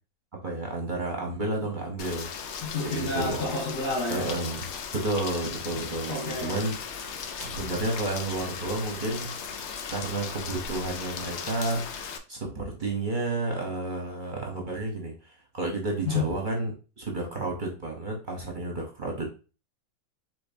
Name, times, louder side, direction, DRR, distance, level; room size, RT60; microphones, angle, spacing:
voice 1, 0.3-2.3 2.8-3.4 4.1-4.7 4.9-6.7 7.4-9.3 9.9-11.8 12.3-19.3, right 2 dB, 40° right, 0 dB, 0.9 m, -31 dB
Rain, 2.0-12.2, left 6 dB, 65° left, 0.7 m, -37 dB
voice 2, 2.6-4.3 6.1-6.6 16.0-16.2, left 3 dB, 90° left, -8 dB, 2.3 m, -30 dB
5.2 x 3.7 x 2.7 m, 0.33 s
omnidirectional pair, 1.5 m